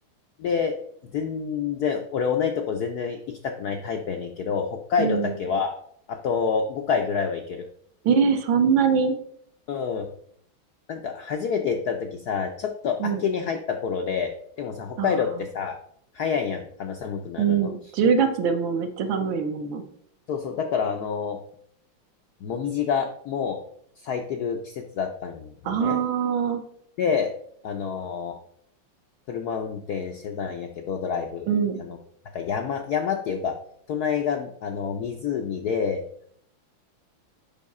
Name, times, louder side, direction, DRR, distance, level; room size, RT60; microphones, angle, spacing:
voice 1, 0.4-0.8 1.1-5.7 6.1-7.7 9.7-10.1 10.9-15.8 16.1-17.7 20.3-21.4 22.4-23.6 24.0-26.0 27.0-27.3 27.6-28.4 29.3-31.5 31.8-31.9 32.3-33.6 33.9-36.0, left 6 dB, 75° left, 4 dB, 0.9 m, -28 dB
voice 2, 5.0-5.3 8.0-9.2 13.0-13.2 15.0-15.2 17.4-19.8 25.6-26.6 31.5-31.8, right 6 dB, 70° right, 6 dB, 1.5 m, -23 dB
7.2 x 5.5 x 4.2 m, 0.66 s
omnidirectional pair, 2.3 m